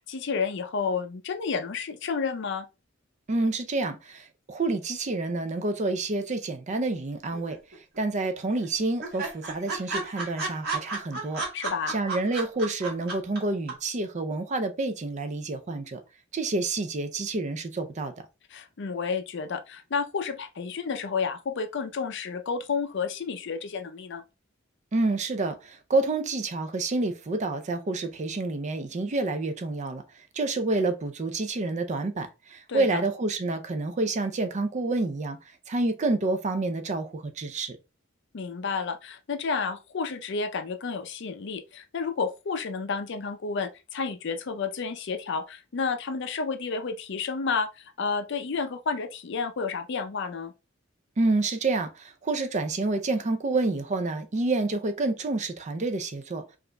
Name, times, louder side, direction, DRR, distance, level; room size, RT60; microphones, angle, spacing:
voice 1, 0.0-2.7 11.5-12.0 18.5-24.2 32.7-33.0 38.3-50.5, left 5 dB, 65° left, 0.5 m, -31 dB
voice 2, 3.3-7.6 8.0-11.4 11.9-16.0 16.3-18.1 24.9-30.0 30.3-35.4 35.7-37.8 51.2-56.4, right 2 dB, 35° right, 0.5 m, -28 dB
sound 1, 7.3-8.0 8.2-8.3 8.6-8.7 9.0-13.4 13.7-13.8, right 4 dB, 55° right, 1.7 m, -32 dB
4.8 x 2.5 x 2.2 m
head